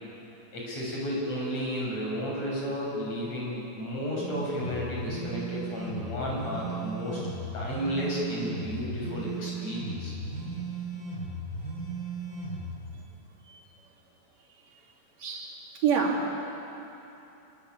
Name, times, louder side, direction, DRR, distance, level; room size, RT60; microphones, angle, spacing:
voice 1, 0.5-7.2 7.5-10.1, equal, 60° left, -4 dB, 8.1 m, -33 dB
sound 1, 4.2-12.7, right 2 dB, 40° right, 8.9 m, -36 dB
voice 2, 15.2-16.3, right 6 dB, 60° right, -1 dB, 3.9 m, -28 dB
26.5 x 23.0 x 8.6 m, 3.0 s
omnidirectional pair, 3.5 m